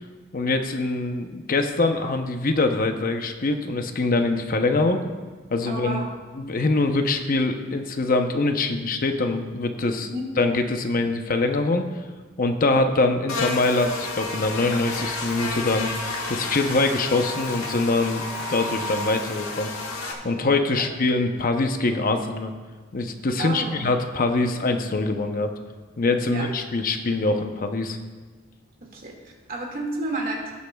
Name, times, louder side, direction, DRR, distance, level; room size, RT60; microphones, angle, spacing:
voice 1, 0.3-5.0 5.5-6.1 6.3-10.1 10.4-11.8 12.4-15.9 16.3-18.2 18.5-19.7 20.2-22.5 22.9-25.5 26.0-28.0, left 2 dB, 45° left, 6 dB, 0.7 m, -23 dB
voice 2, 5.7-6.1 9.9-10.3 12.7-12.8 20.8-20.9 23.4-23.8 26.2-26.5 28.8-30.5, right 2 dB, 45° right, -1 dB, 2.0 m, -31 dB
Buzz, 13.3-20.1, left 2 dB, 85° left, 1.4 m, -31 dB
18.0 x 8.2 x 2.3 m, 1.4 s
head